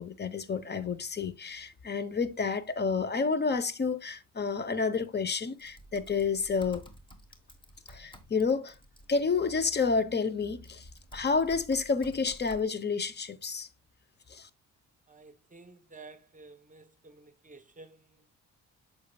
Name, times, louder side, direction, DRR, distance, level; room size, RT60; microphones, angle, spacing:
voice 1, 0.0-6.8 7.9-8.7 9.1-13.7 14.3-14.5, left 5 dB, 35° left, 1.0 m, -30 dB
Typing, 5.6-9.8 10.4-12.6, right 1 dB, 15° left, 1.6 m, -52 dB
voice 2, 15.1-18.3, right 3 dB, 25° right, 1.1 m, -52 dB
8.5 x 6.5 x 2.4 m
cardioid pair, 90°, 30 cm